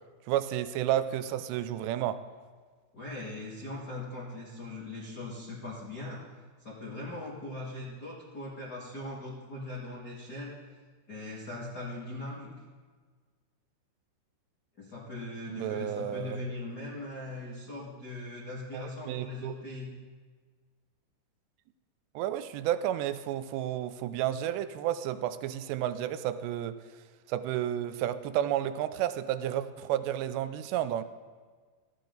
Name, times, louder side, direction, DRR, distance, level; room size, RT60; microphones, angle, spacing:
voice 1, 0.3-2.2 15.5-16.4 18.7-19.5 22.2-26.8 27.3-31.0, right 11 dB, 80° right, 13 dB, 2.6 m, -31 dB
voice 2, 2.9-6.2 6.6-10.8 11.1-12.5 14.8-19.9, left 2 dB, 60° left, -4 dB, 1.0 m, -40 dB
17.5 x 14.0 x 3.9 m, 1.5 s
omnidirectional pair, 5.2 m